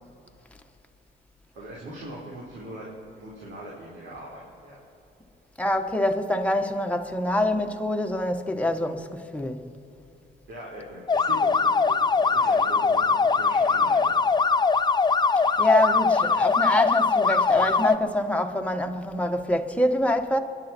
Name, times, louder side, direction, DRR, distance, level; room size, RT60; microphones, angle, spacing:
voice 1, 1.5-2.9 3.1-4.8 10.5-14.1, right 1 dB, 75° right, 4.2 m, -41 dB
voice 2, 5.6-9.7 15.6-20.4, left 1 dB, 5° left, 1.4 m, -25 dB
sound 1, 11.1-18.0, left 4 dB, 20° left, 0.5 m, -21 dB
28.5 x 11.0 x 4.5 m
cardioid pair, 90°, 20 cm